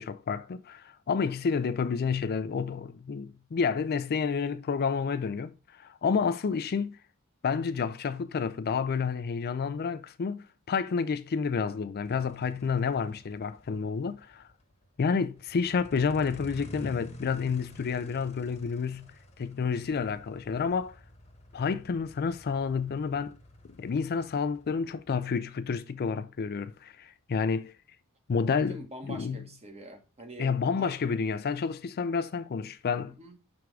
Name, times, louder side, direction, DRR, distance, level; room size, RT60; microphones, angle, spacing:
voice 1, 0.0-7.0 7.4-14.5 15.0-19.1 19.4-21.0 21.5-23.3 23.8-27.7 28.3-28.8 29.1-29.4 30.4-33.2, left 5 dB, 45° left, 0.4 m, -30 dB
sound 1, 12.0-26.6, left 1 dB, 30° left, 1.0 m, -50 dB
voice 2, 28.5-31.0 33.0-33.4, right 1 dB, 30° right, 1.2 m, -45 dB
6.2 x 3.5 x 4.6 m
head